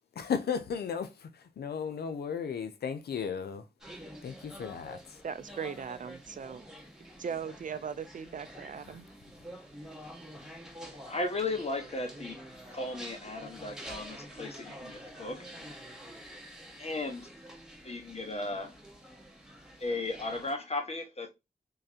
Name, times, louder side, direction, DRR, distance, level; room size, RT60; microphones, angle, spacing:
voice 1, 0.2-3.6 4.2-5.2, left 6 dB, 80° left, 0.5 m, -35 dB
sound 1, 3.8-20.6, equal, 5° right, 1.8 m, -48 dB
voice 2, 5.2-6.6 7.2-9.1, right 7 dB, 55° right, 0.5 m, -38 dB
voice 3, 10.9-12.4 12.7-15.7 16.8-17.3 17.8-18.7 19.8-21.3, left 2 dB, 40° left, 1.2 m, -36 dB
3.8 x 3.2 x 2.8 m
cardioid pair, 50°, 16 cm